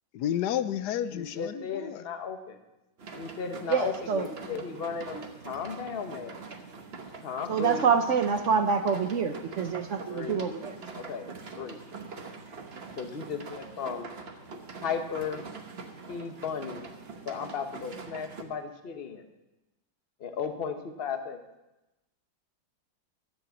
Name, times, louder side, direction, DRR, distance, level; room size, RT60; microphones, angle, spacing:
voice 1, 0.1-2.0, left 10 dB, 70° left, 13 dB, 1.1 m, -31 dB
voice 2, 1.1-2.6 3.2-6.4 7.2-8.0 10.1-10.5 10.9-11.3 11.6-11.8 13.0-14.1 14.8-15.4 16.1-16.9 17.2-19.3 20.2-21.4, left 6 dB, 40° left, 7 dB, 1.0 m, -35 dB
sound 1, 3.0-18.4, right 4 dB, 40° right, 1.1 m, -44 dB
voice 3, 3.7-4.3 7.5-10.7, right 6 dB, 65° right, 8 dB, 0.7 m, -26 dB
13.0 x 7.9 x 7.0 m, 0.99 s
omnidirectional pair, 2.1 m